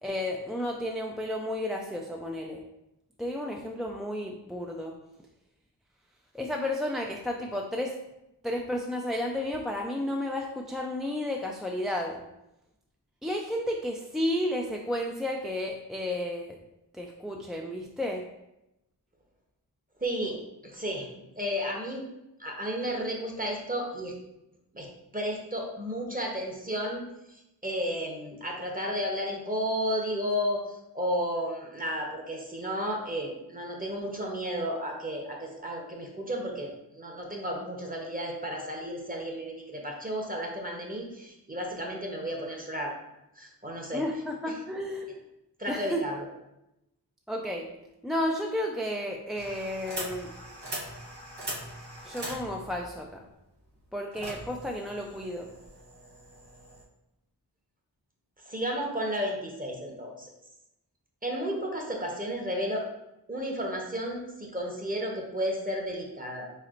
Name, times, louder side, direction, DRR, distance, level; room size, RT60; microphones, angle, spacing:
voice 1, 0.0-2.6 3.2-4.9 6.3-7.9 8.4-12.2 13.2-16.6 16.9-18.3 43.9-45.1 45.7-46.0 47.3-47.7 48.0-50.3 52.0-53.2 53.9-55.5, left 1 dB, ahead, 0 dB, 0.3 m, -32 dB
voice 2, 20.0-21.1 21.4-22.0 22.4-24.1 24.7-24.9 25.1-27.0 27.3-42.9 43.4-44.0 45.6-46.3 58.4-60.3 61.2-62.9 63.3-66.5, equal, 20° right, 0 dB, 0.9 m, -33 dB
sound 1, 49.3-56.8, right 1 dB, 85° right, 1.2 m, -41 dB
4.4 x 4.0 x 2.5 m, 0.90 s
wide cardioid pair, 55°, 41 cm